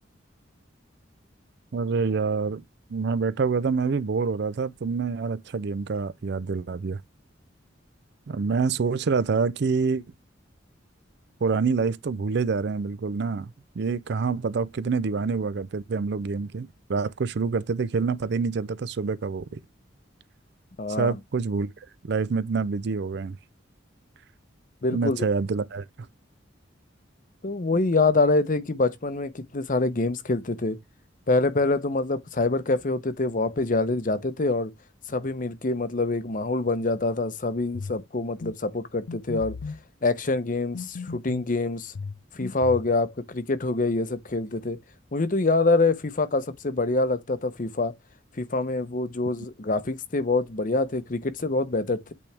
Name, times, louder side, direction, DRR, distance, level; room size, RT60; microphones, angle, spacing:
voice 1, 1.7-2.6 2.9-7.0 8.3-10.0 11.4-19.6 21.0-21.7 22.0-23.4 24.9-25.9, right 4 dB, 60° right, 0.4 m, -26 dB
voice 2, 20.8-21.2 24.8-25.2 27.4-30.8 31.3-34.7 35.1-39.6 40.0-41.9 42.3-44.8 45.1-47.9 48.3-52.1, left 3 dB, 45° left, 0.7 m, -25 dB
sound 1, 37.7-38.0 38.4-38.6 39.1-39.8 40.7-41.5 41.9-42.9, left 4 dB, 85° left, 0.5 m, -36 dB
8.4 x 3.5 x 3.3 m
head